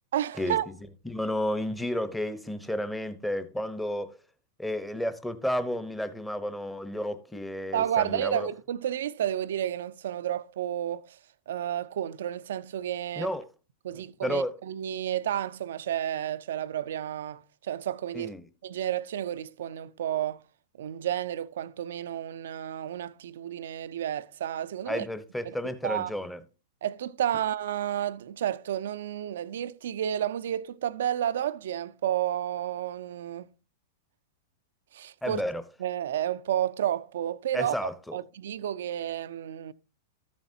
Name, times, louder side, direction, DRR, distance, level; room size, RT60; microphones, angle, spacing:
voice 1, 0.1-0.7 7.7-11.2 11.5-13.3 13.8-18.3 18.6-20.4 20.8-25.1 25.5-26.1 26.8-33.5 34.9-35.4 35.8-39.7, right 11 dB, 75° right, 0.4 m, -31 dB
voice 2, 1.0-4.1 4.6-8.5 13.2-13.5 13.9-14.5 18.1-18.5 24.9-26.4 35.2-35.6 37.5-38.2, left 1 dB, 5° left, 0.9 m, -32 dB
13.0 x 7.2 x 2.7 m
hypercardioid pair, 115°, 0 cm